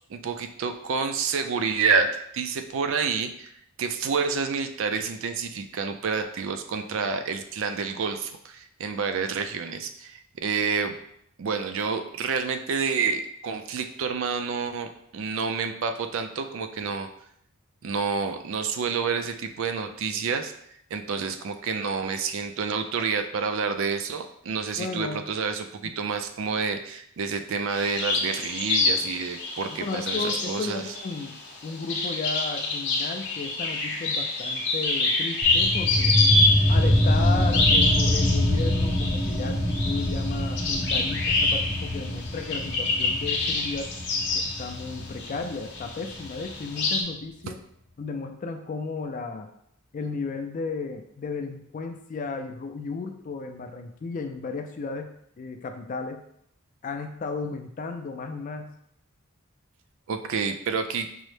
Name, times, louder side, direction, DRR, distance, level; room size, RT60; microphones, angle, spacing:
voice 1, 0.1-2.1 2.3-3.5 3.8-10.9 11.4-17.1 17.8-20.5 20.9-30.8 60.1-61.1, right 5 dB, 60° right, 7 dB, 0.3 m, -28 dB
voice 2, 24.8-25.2 29.8-36.2 36.7-43.9 44.3-47.6 48.0-49.5 49.9-56.2 56.8-58.8, left 4 dB, 35° left, 6 dB, 0.3 m, -34 dB
sound 1, 27.7-45.4 45.7-47.0, left 3 dB, 50° left, 0.7 m, -27 dB
sound 2, 35.4-46.5, left 1 dB, 15° left, 0.7 m, -25 dB
5.4 x 2.0 x 3.2 m, 0.71 s
head